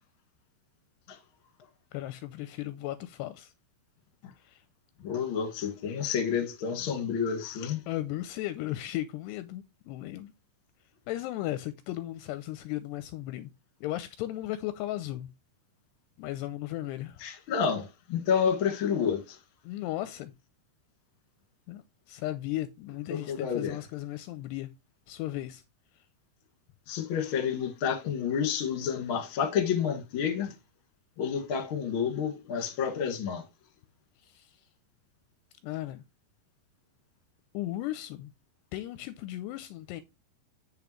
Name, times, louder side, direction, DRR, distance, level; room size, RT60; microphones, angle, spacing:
voice 1, 1.9-3.5 4.4-4.6 7.9-10.3 11.1-13.5 13.8-15.3 16.2-17.2 19.6-20.3 21.7-24.7 25.1-25.6 34.2-34.5 35.6-36.0 37.5-38.3 38.7-40.0, left 15 dB, 80° left, 2.6 m, -36 dB
voice 2, 5.0-7.8 17.2-19.4 23.1-23.8 26.9-30.5 31.2-33.4, left 7 dB, 45° left, 1.9 m, -29 dB
8.1 x 7.0 x 3.1 m
omnidirectional pair, 5.2 m